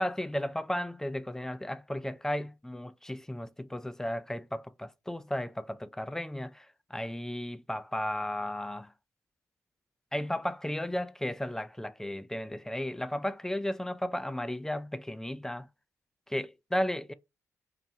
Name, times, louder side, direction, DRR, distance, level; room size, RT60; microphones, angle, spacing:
voice 1, 0.0-6.7 6.9-8.9 10.1-15.7 16.3-17.1, left 1 dB, 10° left, 0.3 m, -34 dB
4.0 x 2.1 x 2.7 m
cardioid pair, 65°, 6 cm